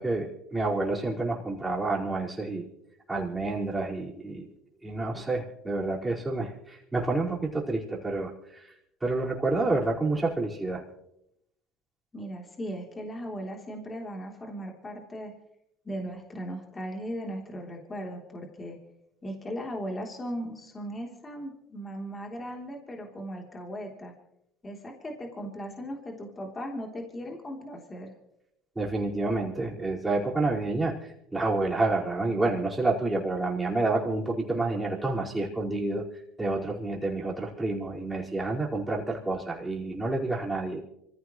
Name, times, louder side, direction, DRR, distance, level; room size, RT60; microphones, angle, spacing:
voice 1, 0.0-2.7 3.1-4.5 4.8-8.7 9.0-10.8 28.7-36.0 36.4-40.8, right 2 dB, 15° right, -3 dB, 4.9 m, -29 dB
voice 2, 12.1-15.3 15.8-18.8 19.2-24.1 24.6-28.1, equal, 25° left, 1 dB, 3.4 m, -37 dB
26.0 x 15.5 x 3.2 m, 0.79 s
supercardioid pair, 90°, 0 cm